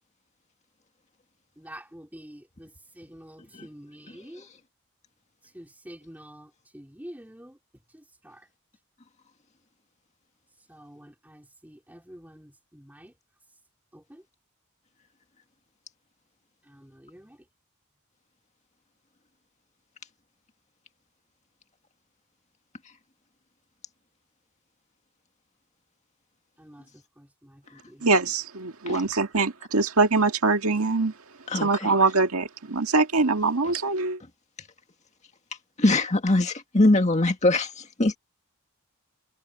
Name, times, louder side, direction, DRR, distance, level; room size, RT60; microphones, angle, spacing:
voice 1, 1.6-2.7 3.0-4.5 5.5-7.6 7.9-8.5 10.7-13.1 13.9-14.2 16.7-17.4 26.6-26.9 27.2-28.1, equal, 10° right, 3.7 m, -47 dB
voice 2, 28.0-31.1 31.6-34.2, right 3 dB, 75° right, 1.9 m, -23 dB
voice 3, 31.5-31.9 35.8-38.2, left 2 dB, 30° left, 1.8 m, -22 dB
head